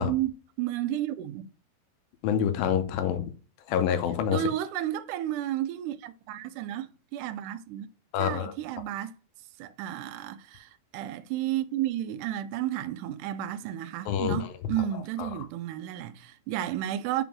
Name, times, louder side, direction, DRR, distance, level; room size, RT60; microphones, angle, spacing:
voice 1, 0.0-1.5 4.3-7.9 8.2-9.1 9.6-17.2, right 12 dB, 80° right, 1.9 m, -32 dB
voice 2, 2.2-3.3 3.7-4.4 8.1-8.5 14.1-14.5 15.2-15.3, left 9 dB, 80° left, 2.6 m, -26 dB
6.0 x 3.7 x 5.9 m
omnidirectional pair, 4.1 m